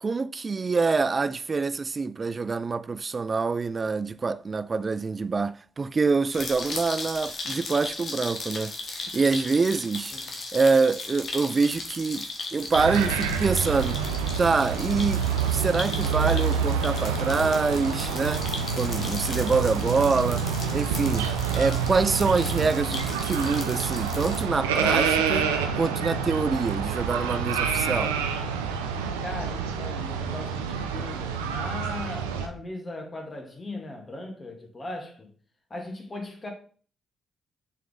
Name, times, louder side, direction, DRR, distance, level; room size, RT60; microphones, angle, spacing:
voice 1, 0.0-10.1 10.5-14.0 14.4-18.5 18.8-20.5 20.7-28.2, right 4 dB, 40° right, 0.4 m, -26 dB
sound 1, 6.3-24.4, left 3 dB, 50° left, 1.4 m, -37 dB
sound 2, 12.7-32.5, right 6 dB, 85° right, 0.6 m, -27 dB
voice 2, 19.5-20.0 29.2-35.3 35.7-36.5, left 2 dB, 35° left, 2.4 m, -38 dB
7.3 x 4.2 x 3.8 m
hypercardioid pair, 40°, 0 cm